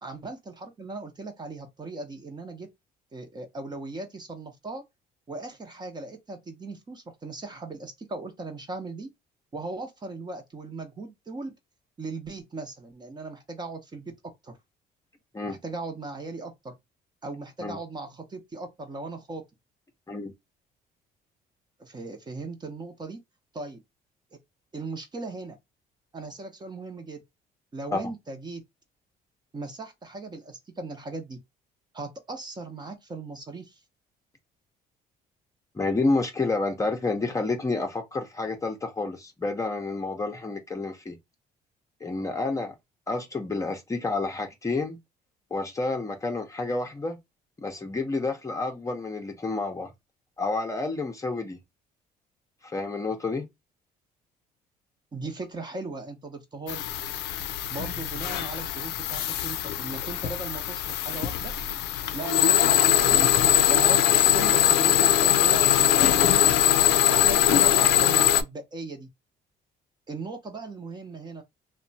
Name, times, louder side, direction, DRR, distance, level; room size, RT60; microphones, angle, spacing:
voice 1, 0.0-2.7 3.1-4.8 5.3-9.1 9.5-11.5 12.0-14.1 14.4-14.6 15.5-16.8 17.2-19.4 21.8-23.2 23.5-23.8 24.7-25.6 26.1-27.2 27.7-28.6 29.5-31.4 31.9-33.8 55.1-56.8 57.7-61.5 62.1-63.3 63.7-66.5 67.1-69.1 70.1-71.4, right 3 dB, 25° right, 0.7 m, -38 dB
voice 2, 35.7-41.2 42.0-42.7 43.1-45.0 45.5-47.2 47.6-49.9 50.4-51.6 52.6-53.5, left 3 dB, 20° left, 0.6 m, -29 dB
sound 1, 56.7-68.4, left 11 dB, 85° left, 0.5 m, -22 dB
2.9 x 2.2 x 2.6 m
cardioid pair, 110°, 17 cm